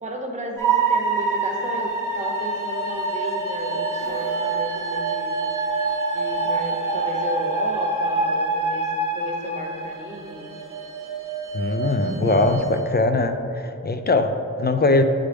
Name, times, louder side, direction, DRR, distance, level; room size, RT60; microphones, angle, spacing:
voice 1, 0.0-5.3 6.1-10.5 11.9-12.4, right 1 dB, 20° right, 0 dB, 0.9 m, -33 dB
sound 1, 0.6-12.8, right 3 dB, 70° right, 0.8 m, -26 dB
sound 2, 3.9-5.9, equal, 60° left, 1.4 m, -42 dB
voice 2, 11.5-15.0, left 2 dB, 30° left, 7 dB, 0.4 m, -21 dB
8.6 x 3.4 x 3.4 m, 2.9 s
wide cardioid pair, 55°, 33 cm